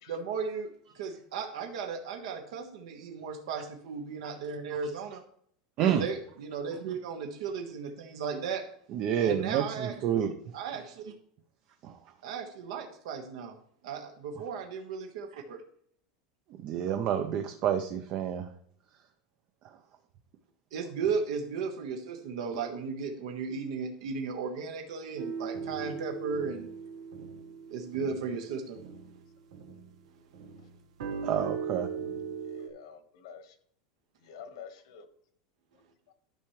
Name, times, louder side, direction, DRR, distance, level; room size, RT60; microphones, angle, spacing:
voice 1, 0.1-5.2 5.9-8.6 9.2-9.9 10.5-11.1 12.2-13.6 13.8-15.6 20.7-26.7 27.7-28.8, right 5 dB, 70° right, 4 dB, 1.2 m, -35 dB
voice 2, 8.9-10.3 11.8-12.0 16.5-18.5 19.6-19.8 31.2-31.9, right 9 dB, 35° right, 6 dB, 0.6 m, -29 dB
sound 1, 25.2-30.0 30.3-32.7, right 6 dB, 90° right, 1.3 m, -39 dB
voice 3, 32.4-33.6 34.2-35.0 36.1-36.2, left 7 dB, 70° left, 9 dB, 1.3 m, -48 dB
12.0 x 5.7 x 3.1 m, 0.64 s
supercardioid pair, 170°, 3 cm